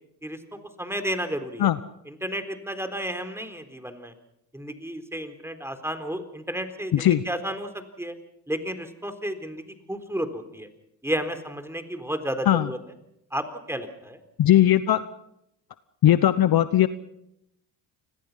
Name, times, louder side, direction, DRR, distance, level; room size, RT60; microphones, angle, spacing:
voice 1, 0.2-1.7 2.1-4.1 4.5-8.1 8.5-9.6 9.9-10.7 11.0-12.8 13.3-14.2, equal, 5° right, 8 dB, 3.9 m, -32 dB
voice 2, 6.9-7.2 12.5-12.7 14.4-15.0 16.0-16.9, left 12 dB, 45° left, 14 dB, 1.0 m, -18 dB
29.5 x 21.0 x 5.7 m, 0.82 s
hypercardioid pair, 60°, 50 cm